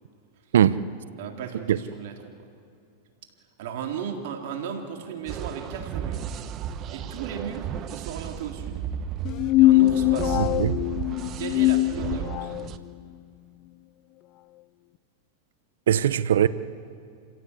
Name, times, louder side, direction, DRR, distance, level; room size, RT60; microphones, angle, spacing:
voice 1, 0.5-0.8 1.7-1.8 10.4-10.8 15.9-16.5, right 10 dB, 85° right, 0.9 m, -21 dB
voice 2, 1.2-2.5 3.6-6.2 6.9-8.8 9.6-10.5 11.4-12.5, right 7 dB, 65° right, 3.6 m, -36 dB
sound 1, 5.3-12.8, right 9 dB, 40° right, 1.1 m, -34 dB
sound 2, 9.2-12.7, left 17 dB, 45° left, 0.6 m, -22 dB
28.0 x 16.5 x 8.4 m
hypercardioid pair, 120°, 0 cm